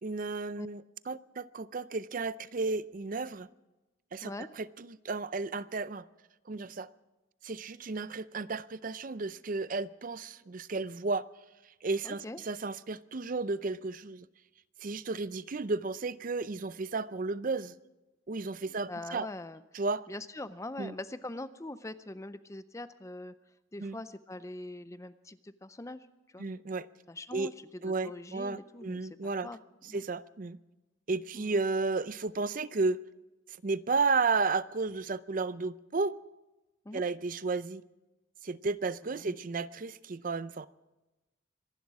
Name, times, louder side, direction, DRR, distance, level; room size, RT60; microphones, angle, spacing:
voice 1, 0.0-3.5 4.1-6.0 6.5-6.9 7.4-11.2 11.8-14.3 14.8-17.8 18.3-19.3 19.7-20.1 20.8-20.9 23.8-24.0 26.4-26.9 27.3-27.5 27.8-29.5 29.9-30.6 31.1-33.0 33.6-36.1 36.9-37.8 38.4-40.7, right 3 dB, 45° right, 0.5 m, -33 dB
voice 2, 12.0-12.4 18.7-19.6 20.1-23.3 23.7-26.5 27.1-29.6 29.9-30.0 31.3-31.5 36.8-37.0 39.1-39.4, left 2 dB, 15° left, 0.5 m, -43 dB
25.5 x 11.5 x 4.8 m
head